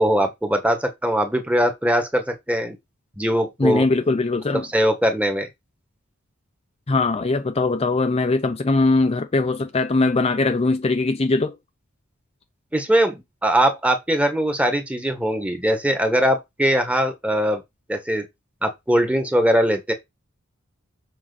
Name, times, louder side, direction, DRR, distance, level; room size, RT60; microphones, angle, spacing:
voice 1, 0.0-2.8 3.2-3.9 4.5-5.5 12.7-17.6 17.9-18.3 18.6-19.9, equal, 5° right, 1.6 m, -21 dB
voice 2, 3.6-4.6 6.9-11.6, left 3 dB, 30° left, 0.6 m, -21 dB
7.5 x 5.7 x 4.1 m
head